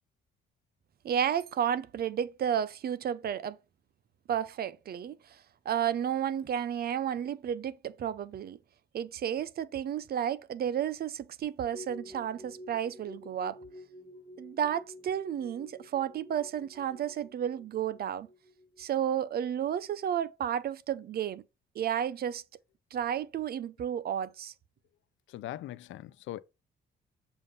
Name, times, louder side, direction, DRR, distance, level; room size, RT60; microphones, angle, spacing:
voice 1, 1.0-3.6 4.3-8.6 8.9-13.6 14.4-18.3 18.8-21.4 21.7-22.4 22.9-24.5, right 9 dB, 50° right, 0.5 m, -32 dB
sound 1, 11.7-19.2 19.5-19.6, left 1 dB, 15° right, 1.6 m, -50 dB
voice 2, 25.3-26.4, left 14 dB, 75° left, 0.5 m, -40 dB
6.9 x 2.6 x 5.3 m
cardioid pair, 90°, 20 cm